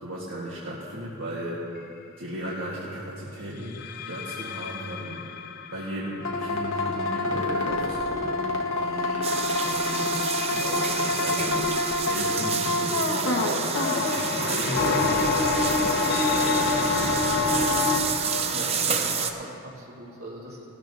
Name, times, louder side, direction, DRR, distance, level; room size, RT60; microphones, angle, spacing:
voice 1, 0.0-1.6 2.2-5.2 5.7-9.4 9.6-10.2 10.5-17.7, right 1 dB, 70° right, -6 dB, 1.5 m, -35 dB
sound 1, 1.8-2.0 3.5-8.3 9.1-19.6, left 6 dB, 45° left, 0.4 m, -37 dB
sound 2, 6.2-18.0, left 3 dB, 65° left, 1.3 m, -26 dB
sound 3, 9.2-19.3, right 6 dB, 30° right, 0.6 m, -29 dB
voice 2, 18.5-20.7, right 1 dB, 90° right, -6 dB, 3.4 m, -40 dB
18.0 x 13.5 x 2.7 m, 2.8 s
head